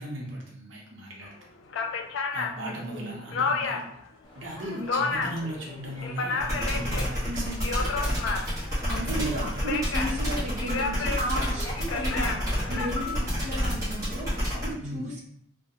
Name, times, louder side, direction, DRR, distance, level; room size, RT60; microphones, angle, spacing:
voice 1, 0.0-1.3 2.3-3.8 4.3-7.7 9.0-9.5 14.8-15.1, right 1 dB, 85° right, -3 dB, 0.7 m, -37 dB
sound 1, 1.2-1.3 1.7-4.0 4.4-5.5 5.8-7.1 7.5-8.7 9.4-10.2 10.6-12.9, left 4 dB, 85° left, 0.3 m, -31 dB
voice 2, 2.6-3.2 4.7-5.0 7.2-7.7 8.9-12.3 12.7-15.2, right 1 dB, 40° right, -5 dB, 0.6 m, -34 dB
Human voice / Subway metro underground, 4.2-13.7, left 2 dB, 20° left, 0.5 m, -45 dB
sound 2, 6.4-14.7, equal, 20° right, 1.0 m, -29 dB
2.5 x 2.1 x 2.8 m, 0.70 s
head